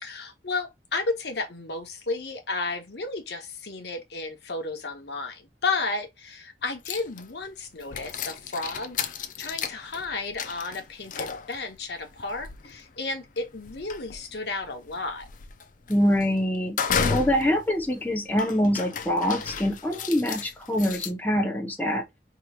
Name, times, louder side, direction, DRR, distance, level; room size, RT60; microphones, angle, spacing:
voice 1, 0.0-9.0 9.4-15.3, left 3 dB, 65° left, 0.9 m, -33 dB
sound 1, 6.9-7.4 7.8-21.1, left 6 dB, 45° left, 0.4 m, -34 dB
voice 2, 15.9-16.8 17.1-22.0, equal, 10° left, 0.7 m, -24 dB
4.6 x 2.9 x 2.3 m
head